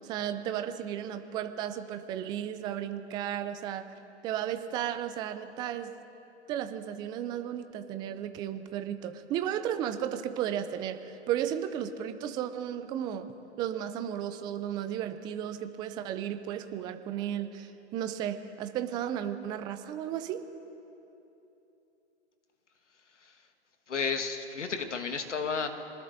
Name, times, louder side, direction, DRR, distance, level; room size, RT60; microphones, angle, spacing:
voice 1, 0.0-3.9 4.2-5.9 6.5-13.3 13.6-20.5, right 10 dB, 15° right, 9 dB, 0.4 m, -34 dB
voice 2, 23.9-25.7, left 5 dB, 90° left, 6 dB, 1.7 m, -32 dB
25.5 x 19.5 x 2.7 m, 3.0 s
hypercardioid pair, 125°, 35 cm